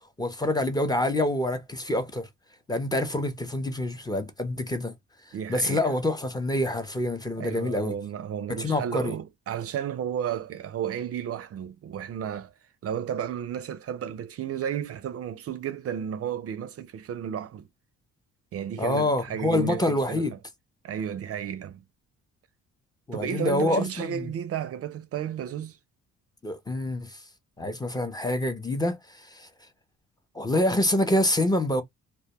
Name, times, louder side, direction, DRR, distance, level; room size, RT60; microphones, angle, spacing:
voice 1, 0.2-2.3 2.7-4.9 5.5-7.9 8.5-9.1 18.8-20.3 23.1-24.3 26.4-27.2 27.6-29.5 30.3-31.8, left 1 dB, 15° left, 0.6 m, -26 dB
voice 2, 5.3-5.9 7.4-12.5 12.8-17.7 18.5-20.4 20.8-21.8 23.1-25.8, right 9 dB, 50° right, 0.4 m, -33 dB
2.2 x 2.1 x 2.8 m
cardioid pair, 90°, 30 cm